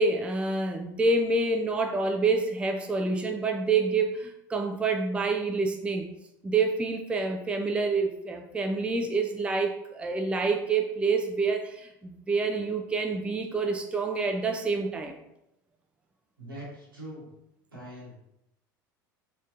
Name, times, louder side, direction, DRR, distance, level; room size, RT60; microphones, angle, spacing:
voice 1, 0.0-6.1 6.4-15.2, right 3 dB, 10° right, 3 dB, 0.3 m, -27 dB
voice 2, 16.4-17.3 17.7-18.2, right 1 dB, 85° right, -4 dB, 1.1 m, -42 dB
3.1 x 2.9 x 2.4 m, 0.83 s
figure-of-eight pair, 75°, 11 cm